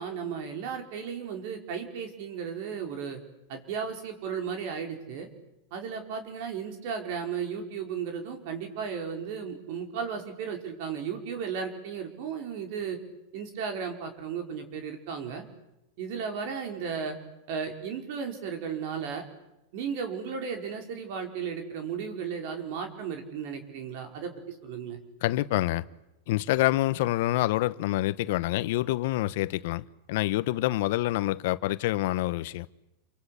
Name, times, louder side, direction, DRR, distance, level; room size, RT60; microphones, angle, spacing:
voice 1, 0.0-3.2 3.5-5.3 5.7-13.0 13.3-15.4 16.0-17.2 17.5-19.2 19.7-25.0, right 6 dB, 55° right, 5.1 m, -35 dB
voice 2, 25.2-25.8 26.3-32.7, left 16 dB, 65° left, 1.1 m, -27 dB
29.0 x 23.5 x 8.6 m
supercardioid pair, 140°, 0 cm